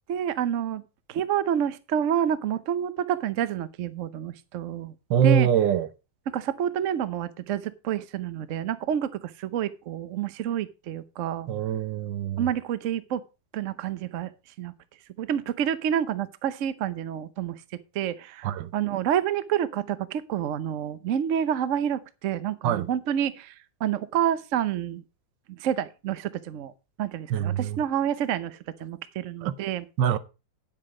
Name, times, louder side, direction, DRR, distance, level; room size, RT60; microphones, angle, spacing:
voice 1, 0.1-0.8 1.1-4.9 5.2-5.5 6.3-9.1 9.4-11.5 12.4-13.2 13.5-14.3 14.6-14.7 15.2-17.6 17.9-23.5 23.8-25.0 25.6-26.7 27.0-29.8, right 9 dB, 55° right, 0.9 m, -28 dB
voice 2, 5.1-5.9 11.5-12.5 18.4-18.7 22.6-22.9 27.3-27.8 29.4-29.5 30.0-30.2, right 8 dB, 80° right, 1.4 m, -24 dB
9.8 x 7.6 x 4.8 m
omnidirectional pair, 2.0 m